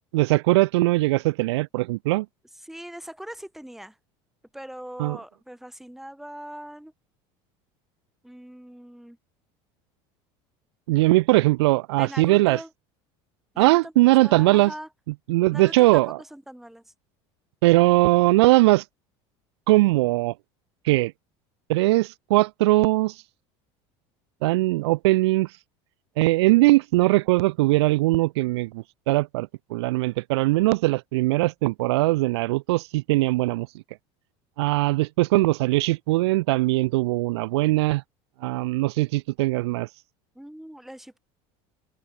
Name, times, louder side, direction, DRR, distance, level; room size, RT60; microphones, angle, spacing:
voice 1, 0.1-2.3 5.0-5.2 10.9-12.6 13.6-14.7 15.3-16.2 17.6-18.8 19.7-20.3 20.8-21.1 21.7-23.1 24.4-25.5 26.2-33.7 34.6-38.0 38.4-39.9, right 20 dB, 90° right, 1.3 m, -20 dB
voice 2, 2.6-4.0 4.5-6.9 8.2-9.2 12.0-12.7 13.5-14.9 15.5-16.8 40.3-41.2, right 1 dB, ahead, 7.7 m, -41 dB
supercardioid pair, 115°, 14 cm